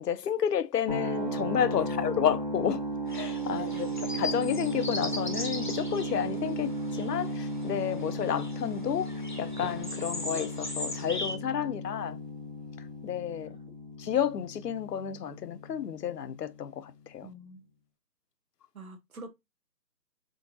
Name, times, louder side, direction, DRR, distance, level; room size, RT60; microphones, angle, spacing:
voice 1, 0.0-2.8 3.1-3.9 4.1-9.1 9.4-12.2 13.0-13.6 14.0-17.3, left 9 dB, 80° left, 0.6 m, -31 dB
sound 1, 0.9-16.8, right 1 dB, 30° right, 0.4 m, -35 dB
voice 2, 1.7-2.1 3.5-3.9 17.2-17.7 18.7-19.3, right 2 dB, 60° right, 1.2 m, -45 dB
sound 2, 3.1-11.4, left 2 dB, 30° left, 0.5 m, -39 dB
3.8 x 3.5 x 2.4 m
figure-of-eight pair, 155°, 48 cm